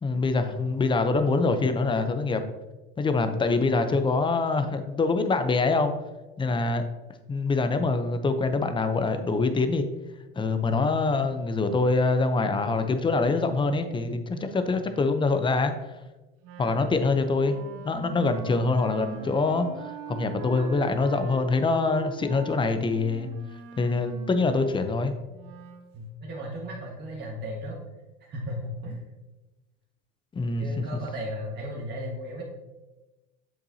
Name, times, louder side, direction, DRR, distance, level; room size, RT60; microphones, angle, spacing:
voice 1, 0.0-2.4 3.0-5.9 6.4-6.8 7.3-9.9 10.4-15.7 16.6-17.6 17.8-23.3 23.8-25.1 30.3-30.8, left 3 dB, 15° left, 9 dB, 0.7 m, -25 dB
Wind instrument woodwind instrument, 16.4-25.9, right 5 dB, 60° right, 1.1 m, -43 dB
voice 2, 25.9-27.8 28.2-29.0 30.6-32.4, equal, 35° right, -3 dB, 1.6 m, -36 dB
7.7 x 7.0 x 2.8 m, 1.1 s
supercardioid pair, 110°, 31 cm